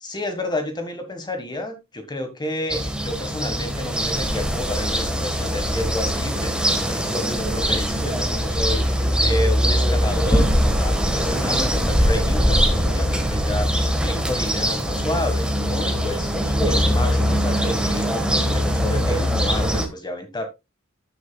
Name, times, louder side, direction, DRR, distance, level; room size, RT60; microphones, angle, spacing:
voice 1, 0.0-20.5, left 1 dB, 20° left, 1.5 m, -30 dB
sound 1, 2.7-19.9, equal, 5° right, 1.4 m, -21 dB
14.0 x 6.7 x 2.3 m
head